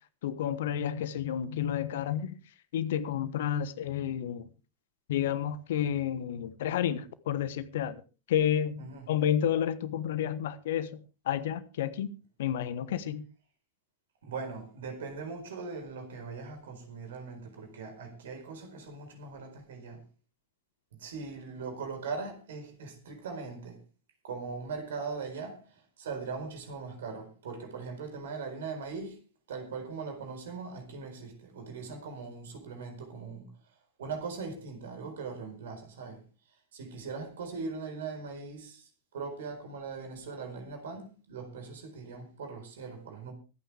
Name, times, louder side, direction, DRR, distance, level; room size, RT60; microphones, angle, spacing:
voice 1, 0.2-2.3 2.7-4.5 5.1-8.0 8.3-10.9 11.3-12.1 12.4-13.2, left 10 dB, 55° left, 1.1 m, -30 dB
voice 2, 8.8-9.1 14.2-20.0 20.9-23.8 24.2-29.2 29.5-33.5 34.0-36.2 36.7-43.3, right 4 dB, 60° right, 4.4 m, -40 dB
24.0 x 9.2 x 3.4 m
figure-of-eight pair, 90°, 0 cm